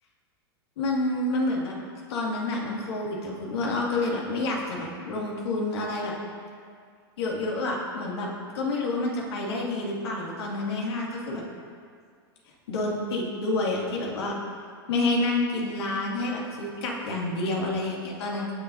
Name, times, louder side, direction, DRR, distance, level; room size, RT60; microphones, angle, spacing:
voice 1, 0.8-1.7 2.1-6.1 7.2-8.3 8.5-11.4 12.7-14.3 14.9-18.5, left 2 dB, 75° left, -3 dB, 2.4 m, -28 dB
17.0 x 6.6 x 2.8 m, 2.1 s
hypercardioid pair, 125°, 13 cm